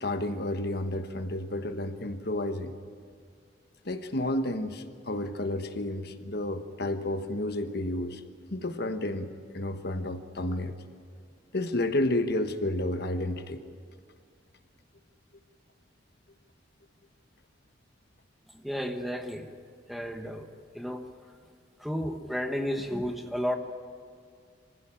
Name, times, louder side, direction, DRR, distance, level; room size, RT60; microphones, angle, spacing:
voice 1, 0.0-2.7 3.8-8.2 8.5-10.7 11.5-13.6, left 1 dB, 60° left, 8 dB, 1.2 m, -31 dB
voice 2, 18.5-19.5 19.9-20.5 20.7-21.1 21.8-23.6, equal, ahead, 5 dB, 1.2 m, -32 dB
24.5 x 15.5 x 8.9 m, 2.2 s
head